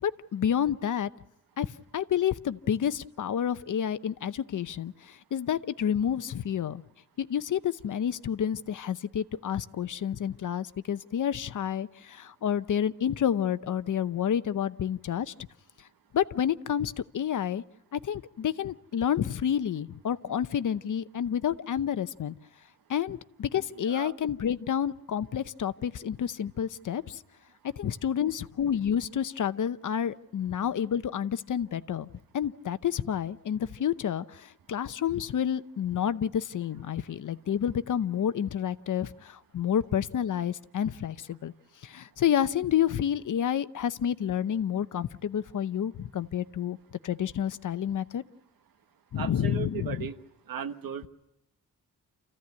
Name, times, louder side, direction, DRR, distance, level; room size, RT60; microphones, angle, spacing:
voice 1, 0.0-1.1 1.6-1.7 1.9-6.8 7.2-15.3 16.1-17.6 17.9-22.3 22.9-27.2 27.6-32.1 32.3-41.5 41.8-46.8 47.0-48.2 49.1-50.1, left 9 dB, 60° left, 13 dB, 0.8 m, -29 dB
voice 2, 23.7-24.2 49.2-50.1 50.5-51.1, right 8 dB, 80° right, 9 dB, 1.4 m, -36 dB
29.0 x 15.5 x 9.5 m, 0.85 s
wide cardioid pair, 140°, 34 cm